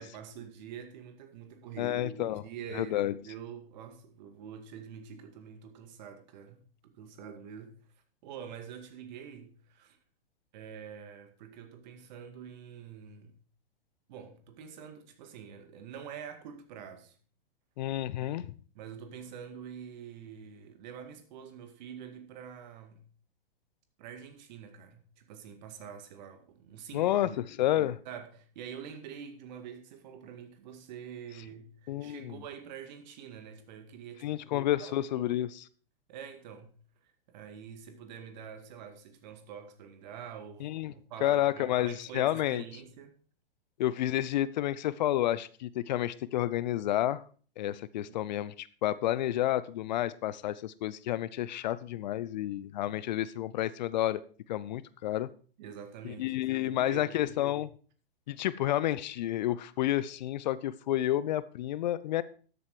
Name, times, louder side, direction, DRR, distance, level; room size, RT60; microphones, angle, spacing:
voice 1, 0.0-7.8 8.2-10.0 10.5-13.3 14.1-17.1 18.2-18.5 18.7-23.0 24.0-27.4 28.1-34.5 34.8-35.4 36.1-36.7 37.3-43.2 48.0-48.3 55.6-57.4, right 7 dB, 50° right, 2.1 m, -46 dB
voice 2, 1.8-2.4 2.7-3.1 17.8-18.5 26.9-28.0 31.9-32.4 34.2-35.7 40.6-40.9 41.2-42.6 43.8-47.2 47.6-54.2 54.5-55.3 56.0-57.7 58.3-62.2, left 13 dB, 50° left, 0.6 m, -30 dB
13.0 x 8.2 x 4.7 m
figure-of-eight pair, 110°, 29 cm